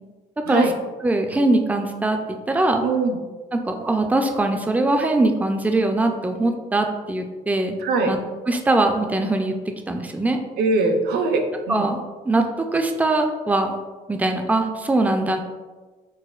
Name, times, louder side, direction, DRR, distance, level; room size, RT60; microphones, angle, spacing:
voice 1, 1.0-2.8 3.5-7.7 8.1-8.2 8.5-9.6 9.9-10.4 11.7-12.0 12.2-13.8 14.1-15.4, right 2 dB, 10° right, 5 dB, 0.3 m, -21 dB
voice 2, 2.8-3.2 7.8-8.1 10.6-11.8, right 3 dB, 70° right, 4 dB, 0.6 m, -21 dB
6.1 x 2.1 x 2.4 m, 1.3 s
cardioid pair, 110°, 17 cm